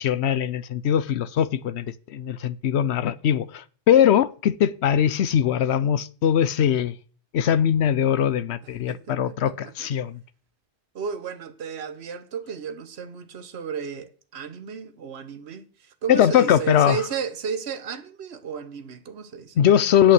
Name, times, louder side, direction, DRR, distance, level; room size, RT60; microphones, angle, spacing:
voice 1, 0.0-6.9 7.3-10.2 16.1-17.0 19.6-20.1, left 9 dB, 80° left, 1.0 m, -21 dB
voice 2, 8.9-9.4 9.6-9.9 10.9-19.6, right 6 dB, 70° right, 1.3 m, -34 dB
8.5 x 8.4 x 7.6 m
omnidirectional pair, 1.1 m